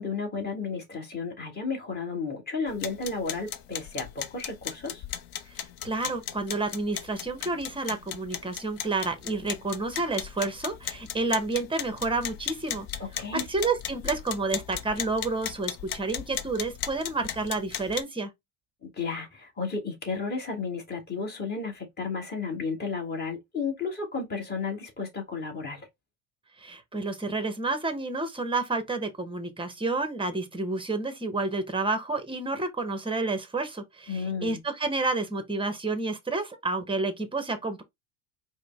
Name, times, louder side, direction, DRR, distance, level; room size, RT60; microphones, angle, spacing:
voice 1, 0.0-5.0 13.0-13.4 18.8-25.9 34.1-34.6, left 4 dB, 20° left, 1.6 m, -33 dB
sound 1, 2.7-18.0, left 10 dB, 50° left, 0.7 m, -37 dB
voice 2, 5.8-12.9 13.3-18.3 26.6-37.8, right 3 dB, 10° right, 0.7 m, -30 dB
4.9 x 2.1 x 3.4 m
supercardioid pair, 110°, 47 cm